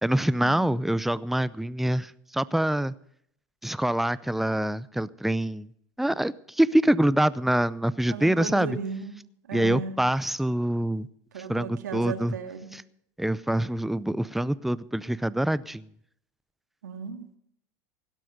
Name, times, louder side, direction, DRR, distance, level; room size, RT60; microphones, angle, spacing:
voice 1, 0.0-2.9 3.6-5.7 6.0-8.8 9.5-11.1 11.5-12.3 13.2-15.8, right 1 dB, ahead, 0.6 m, -25 dB
voice 2, 8.1-9.2 9.5-10.0 11.3-12.7 16.8-17.4, right 5 dB, 90° right, 2.1 m, -35 dB
17.0 x 12.0 x 5.2 m
hypercardioid pair, 95°, 9 cm